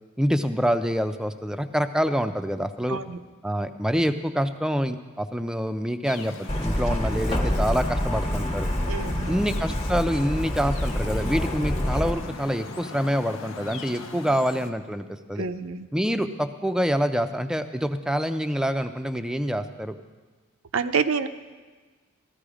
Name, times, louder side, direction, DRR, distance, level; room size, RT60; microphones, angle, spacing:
voice 1, 0.2-3.0 3.4-8.7 9.3-15.5 15.9-19.9, equal, 5° right, 9 dB, 0.5 m, -26 dB
sound 1, 6.0-14.7, left 3 dB, 65° left, 0.9 m, -41 dB
Truck, 6.5-12.1, equal, 30° left, 1.2 m, -27 dB
voice 2, 8.9-9.4 15.4-15.9 20.7-21.3, right 5 dB, 85° right, 9 dB, 0.7 m, -27 dB
14.0 x 14.0 x 5.0 m, 1.4 s
head